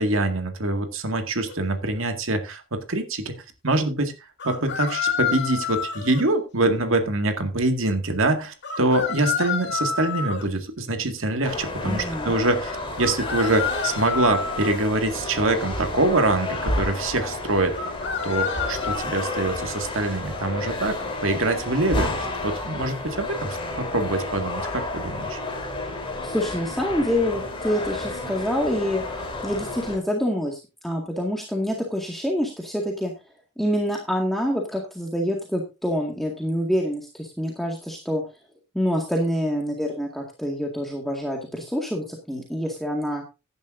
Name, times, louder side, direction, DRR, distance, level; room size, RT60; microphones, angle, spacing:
voice 1, 0.0-3.3 3.6-4.1 4.4-17.7 18.2-25.4, right 2 dB, 65° right, 6 dB, 2.1 m, -24 dB
sound 1, 1.5-1.6 4.4-6.2 8.6-10.4 13.0-14.8 17.7-19.0, left 6 dB, 55° left, 2.8 m, -28 dB
sound 2, 11.4-30.0, left 2 dB, 25° left, 3.8 m, -31 dB
voice 2, 11.9-12.3 26.2-29.0 29.4-33.1 33.6-38.2 38.7-43.2, equal, ahead, 0 dB, 2.0 m, -26 dB
15.5 x 10.5 x 2.7 m, 0.27 s
head